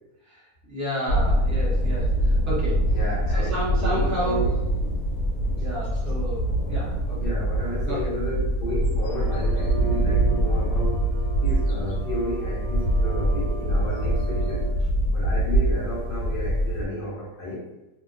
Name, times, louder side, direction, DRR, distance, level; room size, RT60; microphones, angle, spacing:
voice 1, 0.2-3.0 3.3-4.6 5.6-7.2 7.8-8.1, right 1 dB, 20° right, -7 dB, 0.5 m, -31 dB
sound 1, 1.1-16.9, right 1 dB, 90° left, 1.2 m, -24 dB
voice 2, 2.9-4.6 7.1-11.1 11.4-14.7 15.1-17.7, left 1 dB, 60° left, -6 dB, 0.5 m, -32 dB
sound 2, 9.1-14.7, right 4 dB, 75° right, 1.1 m, -37 dB
2.7 x 2.1 x 2.5 m, 0.96 s
omnidirectional pair, 1.7 m